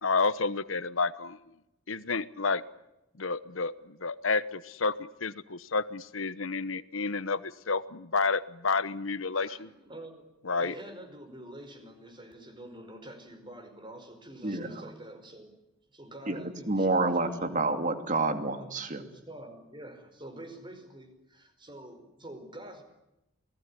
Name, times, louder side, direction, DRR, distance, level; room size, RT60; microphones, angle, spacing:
voice 1, 0.0-1.4 1.9-2.6 3.2-9.7 10.5-10.7, left 4 dB, 75° left, 15 dB, 1.1 m, -30 dB
voice 2, 9.3-15.5 15.9-17.5 18.6-22.8, right 1 dB, 25° right, 8 dB, 5.0 m, -47 dB
voice 3, 14.4-14.9 16.3-19.0, right 2 dB, 40° right, 7 dB, 2.6 m, -29 dB
28.5 x 18.5 x 9.9 m, 0.92 s
head